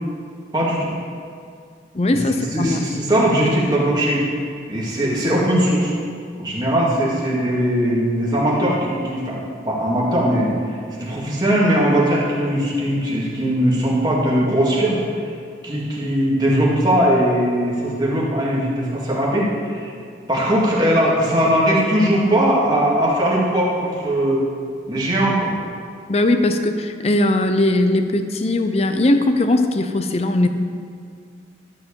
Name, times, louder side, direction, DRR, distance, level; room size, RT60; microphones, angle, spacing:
voice 1, 0.5-0.9 2.1-2.2 2.5-4.2 4.7-5.9 6.4-9.4 9.7-10.5 11.0-15.0 15.6-19.9 20.3-24.4 24.9-25.5, equal, 25° right, -5 dB, 2.1 m, -19 dB
voice 2, 1.9-2.9 26.1-30.5, left 1 dB, 35° left, 8 dB, 0.5 m, -19 dB
13.0 x 4.6 x 7.1 m, 2.3 s
head